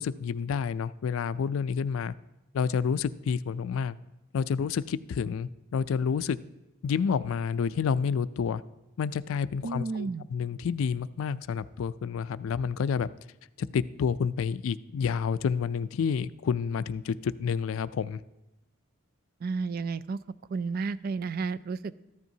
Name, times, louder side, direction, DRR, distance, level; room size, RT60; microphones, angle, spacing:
voice 1, 0.0-2.1 2.5-4.0 4.3-6.4 6.8-8.6 9.0-13.1 13.7-18.2, left 6 dB, 75° left, 15 dB, 0.4 m, -29 dB
voice 2, 9.6-10.3 19.4-20.2 20.5-21.9, right 4 dB, 45° right, 16 dB, 0.3 m, -32 dB
14.0 x 12.0 x 2.7 m, 0.94 s
head